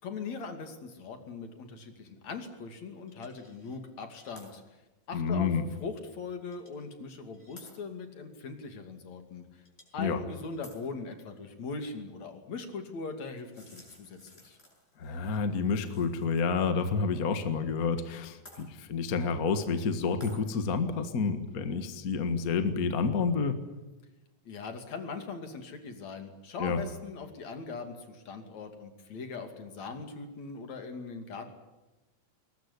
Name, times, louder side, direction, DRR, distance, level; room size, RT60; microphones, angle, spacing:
voice 1, 0.0-4.6 5.1-5.5 5.8-9.6 9.9-14.6 24.5-31.5, left 4 dB, 70° left, 6 dB, 3.9 m, -40 dB
sound 1, 3.1-3.8 4.1-4.5 5.0-5.1 6.5-6.9 7.3-7.7 9.7-10.1 10.4-10.8 13.4-16.4 16.7-16.8 18.5-18.7 20.2-20.4, left 1 dB, 20° left, 7.0 m, -55 dB
voice 2, 5.1-5.6 10.0-10.2 15.0-23.6 26.6-26.8, left 5 dB, 35° left, 9 dB, 1.7 m, -29 dB
22.0 x 20.0 x 9.9 m, 1.1 s
omnidirectional pair, 3.3 m